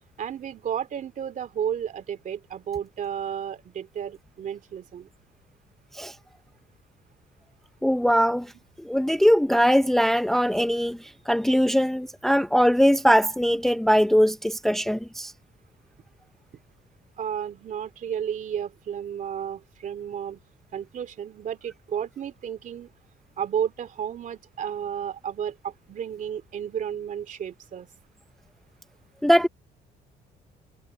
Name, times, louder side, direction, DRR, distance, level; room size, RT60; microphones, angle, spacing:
voice 1, 0.2-5.1 17.2-20.4 20.7-22.9 23.4-27.9, right 8 dB, 50° right, 2.8 m, -32 dB
voice 2, 7.8-8.5 8.8-11.0 11.3-15.3 29.2-29.5, equal, ahead, 0.6 m, -21 dB
cardioid pair, 110°, 17 cm